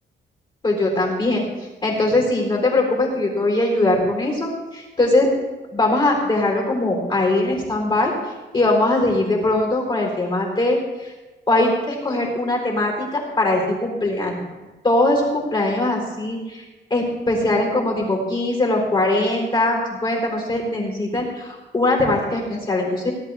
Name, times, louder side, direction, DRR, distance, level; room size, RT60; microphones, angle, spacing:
voice 1, 0.6-1.4 1.8-5.3 5.7-8.1 8.5-11.1 11.5-14.4 14.8-16.6 16.9-23.1, left 2 dB, 25° left, -1 dB, 4.1 m, -21 dB
18.0 x 11.5 x 3.5 m, 1.2 s
wide cardioid pair, 170°, 20 cm